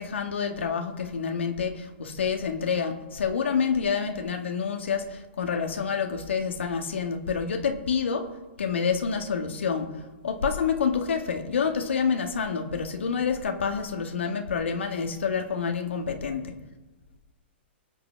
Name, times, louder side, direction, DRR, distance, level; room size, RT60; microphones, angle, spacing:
voice 1, 0.0-8.3 8.6-16.6, left 6 dB, 85° left, 4 dB, 2.0 m, -28 dB
24.5 x 9.0 x 3.6 m, 1.1 s
hypercardioid pair, 130°, 6 cm